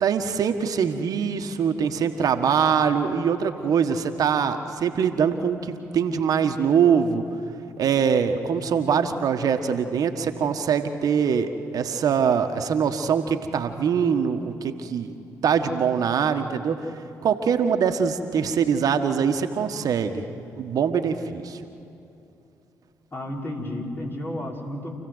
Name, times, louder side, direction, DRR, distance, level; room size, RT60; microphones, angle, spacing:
voice 1, 0.0-7.2 7.8-15.1 15.4-16.9 17.2-20.2 20.6-21.6, right 7 dB, 65° right, 7 dB, 1.4 m, -23 dB
voice 2, 23.1-24.9, left 1 dB, 30° left, -1 dB, 5.4 m, -32 dB
28.5 x 16.0 x 8.0 m, 2.8 s
hypercardioid pair, 50°, 7 cm